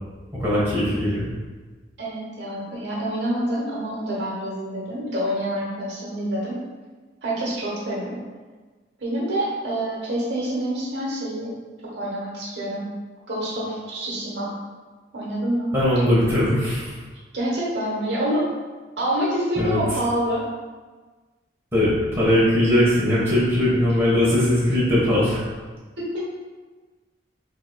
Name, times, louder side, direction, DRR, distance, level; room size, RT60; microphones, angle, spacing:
voice 1, 0.4-1.3 15.7-16.9 19.6-19.8 21.7-25.4, left 1 dB, 15° right, -9 dB, 1.1 m, -20 dB
voice 2, 2.0-6.6 7.2-8.2 9.0-11.5 11.9-12.8 13.3-14.5 15.1-15.7 17.3-18.4 19.0-20.4 26.0-26.2, right 1 dB, 70° right, -5 dB, 1.0 m, -27 dB
5.6 x 2.8 x 2.2 m, 1.4 s
head